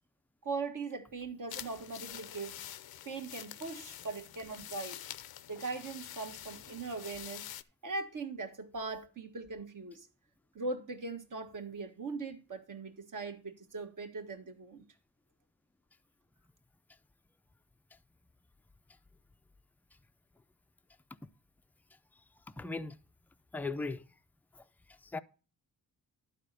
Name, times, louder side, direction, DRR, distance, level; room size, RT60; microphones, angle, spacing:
voice 1, 0.4-2.6 3.0-5.0 5.5-7.4 7.8-10.1 10.5-14.8, right 3 dB, 55° right, 1.6 m, -40 dB
sound 1, 1.5-7.6, left 12 dB, 70° left, 0.6 m, -46 dB
voice 2, 22.6-23.0 23.5-24.0 24.5-24.6 25.0-25.2, left 3 dB, 5° left, 0.4 m, -38 dB
11.5 x 4.2 x 6.5 m
cardioid pair, 90°, 38 cm